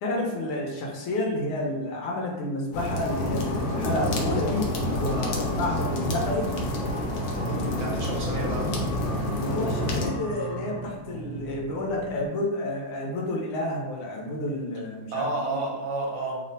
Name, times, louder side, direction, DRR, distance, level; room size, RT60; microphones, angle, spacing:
voice 1, 0.0-6.5 9.4-15.6, left 1 dB, 90° left, -1 dB, 1.6 m, -30 dB
sound 1, 2.7-10.1, left 1 dB, 70° left, 0.9 m, -29 dB
sound 2, 2.9-11.0, left 1 dB, 55° left, 1.7 m, -42 dB
sound 3, 3.9-12.3, right 2 dB, 40° right, 1.1 m, -36 dB
voice 2, 7.7-8.7 15.1-16.4, right 2 dB, 70° right, -2 dB, 1.4 m, -30 dB
3.7 x 2.1 x 3.8 m, 1.1 s
omnidirectional pair, 2.4 m